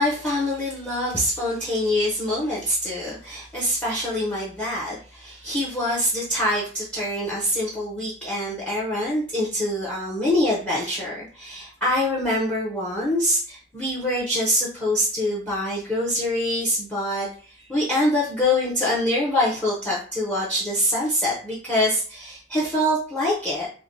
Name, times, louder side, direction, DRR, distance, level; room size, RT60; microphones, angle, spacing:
voice 1, 0.0-23.7, left 1 dB, 5° left, -5 dB, 0.6 m, -25 dB
3.1 x 2.1 x 2.6 m, 0.41 s
head